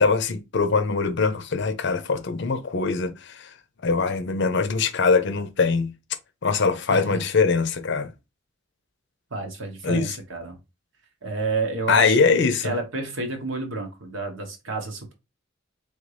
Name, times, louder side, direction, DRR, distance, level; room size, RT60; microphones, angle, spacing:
voice 1, 0.0-3.5 3.8-5.9 6.4-8.1 9.8-10.2 11.9-12.7, left 4 dB, 60° left, 0.7 m, -22 dB
voice 2, 9.3-10.6 11.2-15.1, right 3 dB, 75° right, 1.4 m, -30 dB
3.9 x 3.4 x 3.2 m
head